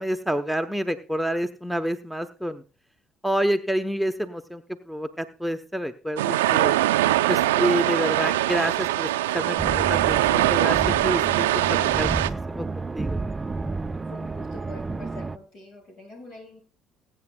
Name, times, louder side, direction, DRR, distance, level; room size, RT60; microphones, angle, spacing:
voice 1, 0.0-2.6 3.2-6.7 7.3-13.2, equal, ahead, 10 dB, 0.9 m, -28 dB
sound 1, 6.2-12.3, right 15 dB, 85° right, 0.4 m, -22 dB
sound 2, 9.6-15.4, right 3 dB, 25° right, 0.5 m, -31 dB
voice 2, 14.1-16.6, left 2 dB, 70° left, 2 dB, 7.1 m, -44 dB
22.5 x 8.8 x 2.3 m, 0.35 s
hypercardioid pair, 60°, 0 cm